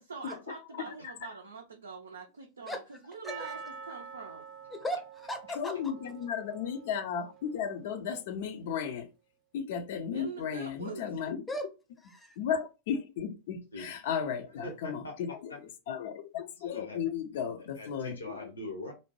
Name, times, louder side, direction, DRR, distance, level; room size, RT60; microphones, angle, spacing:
voice 1, 0.0-4.5 10.1-11.2, right 4 dB, 70° right, 0.4 m, -44 dB
Percussion, 3.3-7.6 7.9-8.0, right 6 dB, 30° right, 0.7 m, -47 dB
voice 2, 4.7-5.9 11.5-11.7 12.0-12.4, equal, 10° left, 0.6 m, -37 dB
voice 3, 5.6-9.1 9.5-11.5 12.4-15.5 15.9-18.2, left 7 dB, 55° left, 0.4 m, -34 dB
voice 4, 14.3-15.2 15.5-15.6 16.6-17.0 17.3-18.9, left 1 dB, 75° left, 0.8 m, -43 dB
2.6 x 2.1 x 2.9 m
figure-of-eight pair, 90°, 0 cm